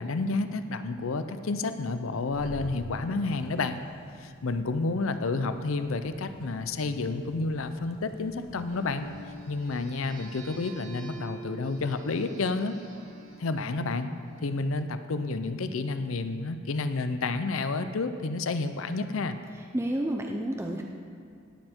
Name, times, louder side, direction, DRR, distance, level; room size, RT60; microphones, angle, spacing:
voice 1, 0.0-3.8 4.2-9.1 9.5-12.8 13.4-14.1 14.4-19.4, left 3 dB, 80° left, 10 dB, 0.6 m, -30 dB
sound 1, 2.2-12.6, left 1 dB, 45° left, 0.9 m, -51 dB
sound 2, 8.7-14.7, right 3 dB, 75° right, 3.1 m, -47 dB
voice 2, 19.7-20.8, right 1 dB, 15° right, 1 dB, 0.5 m, -30 dB
17.5 x 7.7 x 4.5 m, 2.3 s
head